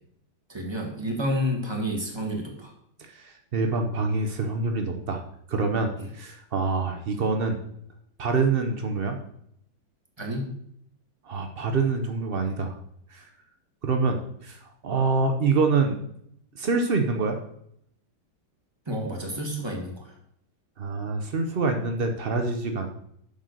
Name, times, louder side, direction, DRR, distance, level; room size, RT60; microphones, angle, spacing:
voice 1, 0.5-2.7 6.0-6.1 10.2-10.5 12.4-12.5 18.8-20.1, equal, 15° right, 0 dB, 1.6 m, -30 dB
voice 2, 3.0-5.2 5.5-7.6 8.2-9.2 11.2-12.7 13.1-13.2 13.8-14.2 14.4-16.0 16.5-17.4 20.8-22.9, right 4 dB, 80° right, 4 dB, 0.5 m, -26 dB
7.4 x 5.5 x 6.5 m, 0.72 s
omnidirectional pair, 2.2 m